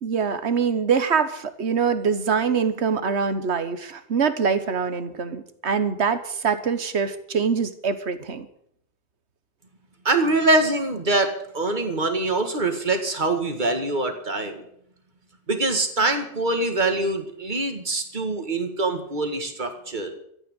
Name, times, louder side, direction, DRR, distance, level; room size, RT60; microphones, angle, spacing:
voice 1, 0.0-8.5, right 6 dB, 70° right, 11 dB, 1.5 m, -24 dB
voice 2, 10.0-14.6 15.5-20.1, right 2 dB, 45° right, 6 dB, 2.1 m, -24 dB
13.5 x 9.0 x 9.0 m, 0.70 s
omnidirectional pair, 1.2 m